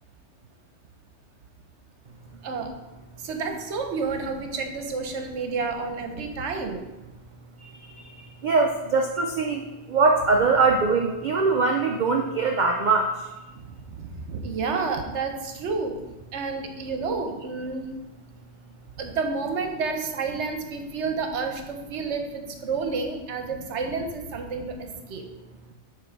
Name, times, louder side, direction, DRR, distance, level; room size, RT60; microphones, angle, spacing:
voice 1, 3.2-6.9 14.0-16.0 16.3-18.0 19.0-25.2, right 4 dB, 70° right, 5 dB, 1.1 m, -30 dB
voice 2, 7.6-13.3, right 4 dB, 50° right, 2 dB, 0.6 m, -23 dB
7.9 x 3.3 x 5.0 m, 1.1 s
omnidirectional pair, 1.2 m